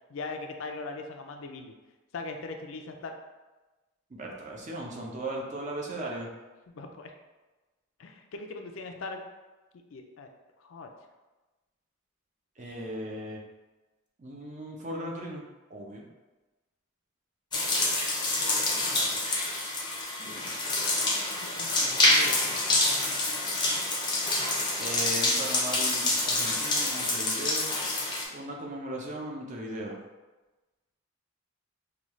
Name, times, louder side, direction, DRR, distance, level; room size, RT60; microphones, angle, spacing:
voice 1, 0.1-1.7 2.1-3.1 6.7-7.1 8.0-9.2 9.9-10.3 10.6-10.9 18.6-19.2 21.3-23.2, left 3 dB, 70° left, 4 dB, 0.4 m, -41 dB
voice 2, 4.1-6.3 12.6-13.4 14.2-15.4 15.7-16.1 20.2-20.7 24.8-27.7 28.3-30.0, right 1 dB, 35° right, -1 dB, 0.5 m, -37 dB
sound 1, 17.5-28.2, left 2 dB, 20° left, 0.5 m, -27 dB
5.0 x 2.3 x 3.1 m, 1.2 s
head